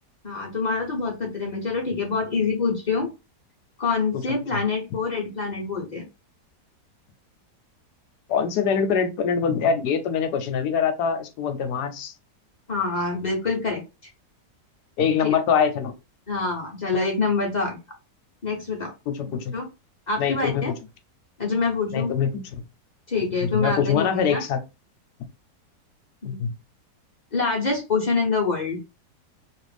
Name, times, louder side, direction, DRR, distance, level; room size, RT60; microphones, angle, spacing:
voice 1, 0.2-3.1 3.8-6.0 12.7-13.8 15.2-15.3 16.3-17.8 18.4-18.9 19.3-19.7 20.1-20.7 21.4-22.1 23.1-24.4 26.2-26.4 27.3-28.8, left 4 dB, 55° left, 0.4 m, -26 dB
voice 2, 8.3-12.1 15.0-15.9 19.1-19.5 20.2-20.6 21.9-22.4 23.4-24.6 26.2-26.5, left 6 dB, 70° left, 1.1 m, -23 dB
3.0 x 2.5 x 3.2 m
omnidirectional pair, 1.9 m